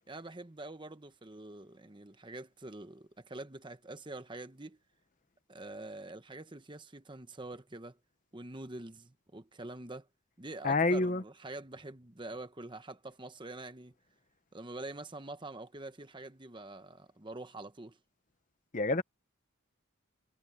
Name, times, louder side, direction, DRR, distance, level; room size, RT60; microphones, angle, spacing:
voice 1, 0.1-4.8 5.5-8.0 8.3-10.1 10.4-13.9 14.5-18.0, right 2 dB, 20° right, 1.0 m, -45 dB
voice 2, 10.6-11.2 18.7-19.0, left 2 dB, 35° left, 0.9 m, -27 dB
head